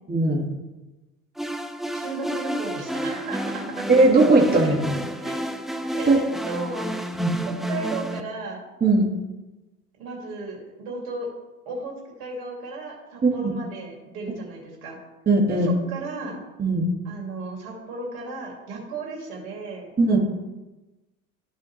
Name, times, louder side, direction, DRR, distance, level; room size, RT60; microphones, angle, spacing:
voice 1, 0.1-0.4 3.9-4.9 6.1-6.2 7.1-7.4 8.8-9.1 13.2-13.3 15.3-15.7 16.6-16.9 20.0-20.2, right 2 dB, 20° right, -2 dB, 2.0 m, -18 dB
sound 1, 1.4-8.2, equal, ahead, 0.4 m, -30 dB
voice 2, 1.9-3.9 4.5-4.8 5.2-5.7 5.9-6.9 7.4-8.6 10.0-11.3 11.7-11.9 12.2-15.0 15.5-16.4 17.0-19.9, right 3 dB, 70° right, -1 dB, 2.8 m, -34 dB
13.5 x 4.9 x 3.3 m, 1.1 s
hypercardioid pair, 75°, 44 cm